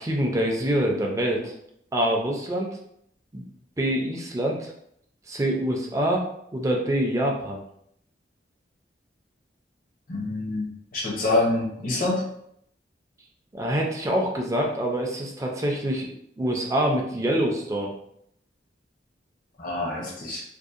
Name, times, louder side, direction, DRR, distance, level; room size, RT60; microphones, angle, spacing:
voice 1, 0.0-1.5 1.9-2.7 3.3-3.4 3.8-4.7 5.3-7.6 13.5-16.1 16.4-17.9, right 1 dB, 20° right, 0 dB, 0.4 m, -25 dB
voice 2, 10.1-10.7 10.9-12.3 19.6-20.4, left 2 dB, 50° left, -3 dB, 0.7 m, -26 dB
2.7 x 2.0 x 2.4 m, 0.71 s
head